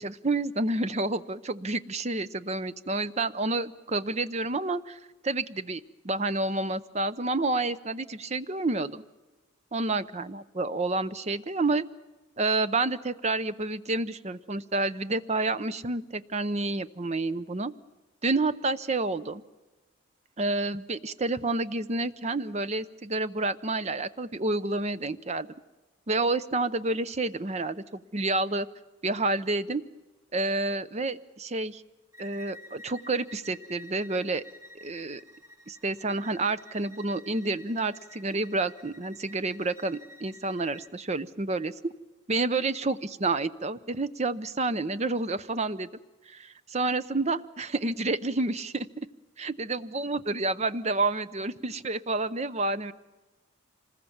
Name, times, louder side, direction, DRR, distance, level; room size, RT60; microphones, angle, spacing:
voice 1, 0.0-9.0 9.7-11.9 12.4-17.7 18.2-19.4 20.4-25.5 26.1-28.7 29.0-29.8 30.3-31.8 32.2-34.4 34.8-35.2 35.7-41.7 42.3-45.9 46.3-48.9 49.4-52.9, right 2 dB, 30° right, 13 dB, 0.7 m, -29 dB
Bowed string instrument, 32.1-40.9, left 1 dB, 15° right, 1.5 m, -51 dB
26.0 x 20.5 x 7.2 m, 1.2 s
head